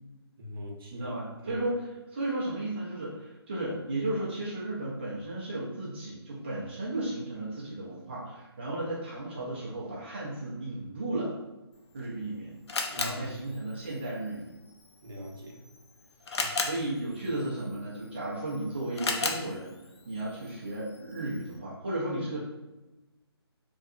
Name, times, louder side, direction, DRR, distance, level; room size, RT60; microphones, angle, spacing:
voice 1, 0.4-1.1 1.4-1.6 12.9-13.6 15.0-15.6 16.4-16.6, left 1 dB, 55° right, -1 dB, 0.7 m, -42 dB
voice 2, 0.9-11.3 11.9-12.5 13.0-14.5 16.6-19.8 20.0-22.4, right 1 dB, 25° right, -8 dB, 0.4 m, -34 dB
Camera, 11.7-21.6, left 3 dB, 75° left, 0.5 m, -38 dB
2.8 x 2.2 x 2.3 m, 1.1 s
hypercardioid pair, 170°, 14 cm